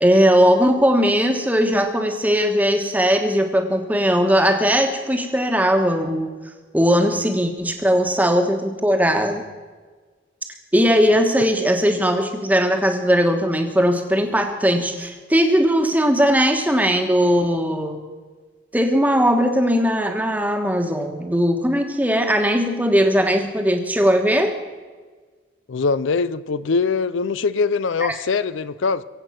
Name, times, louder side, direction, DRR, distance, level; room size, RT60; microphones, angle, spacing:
voice 1, 0.0-6.3 6.7-9.4 10.7-18.0 18.7-24.5, equal, 10° right, 4 dB, 1.3 m, -19 dB
voice 2, 25.7-29.0, left 4 dB, 75° left, 16 dB, 0.5 m, -22 dB
23.0 x 8.2 x 5.9 m, 1.4 s
head